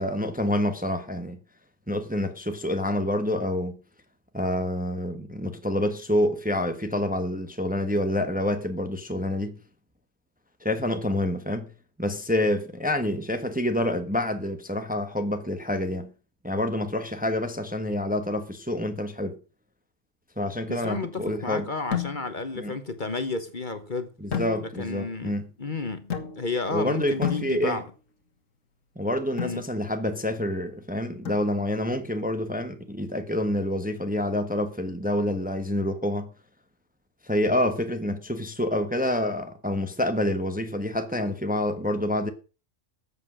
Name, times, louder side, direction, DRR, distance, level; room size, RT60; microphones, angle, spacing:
voice 1, 0.0-1.4 1.9-3.8 4.3-9.6 10.6-11.7 12.0-16.1 16.4-19.4 20.4-21.7 22.6-22.7 24.2-25.5 26.7-27.8 29.0-36.3 37.2-42.3, left 1 dB, 5° right, 1.1 m, -27 dB
voice 2, 20.7-24.1 24.6-27.9 29.4-29.6, left 3 dB, 40° left, 1.3 m, -32 dB
sound 1, 21.9-22.5 24.3-25.0 26.1-26.7 27.2-28.0 29.4-29.7 31.2-31.9, left 9 dB, 75° left, 2.0 m, -33 dB
13.5 x 7.8 x 6.3 m
omnidirectional pair, 1.3 m